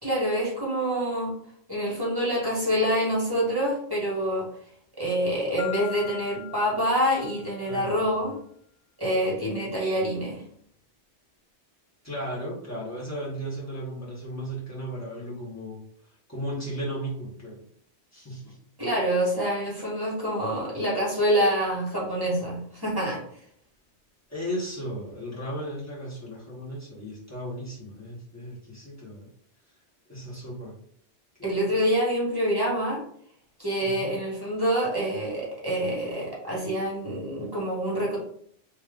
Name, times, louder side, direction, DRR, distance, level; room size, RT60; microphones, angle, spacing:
voice 1, 0.0-1.3 1.7-4.5 5.0-8.3 9.0-10.4 18.8-23.2 31.4-33.0 33.6-38.2, equal, 20° right, -5 dB, 1.2 m, -26 dB
Marimba xylophone, 5.6-7.8, left 18 dB, 85° left, 0.9 m, -41 dB
voice 2, 7.7-8.3 12.0-15.8 16.3-17.7 18.1-18.6 24.3-29.3 30.1-30.8 31.4-31.7 33.8-34.1, equal, 15° left, -6 dB, 1.3 m, -35 dB
3.3 x 2.6 x 3.5 m, 0.64 s
omnidirectional pair, 1.2 m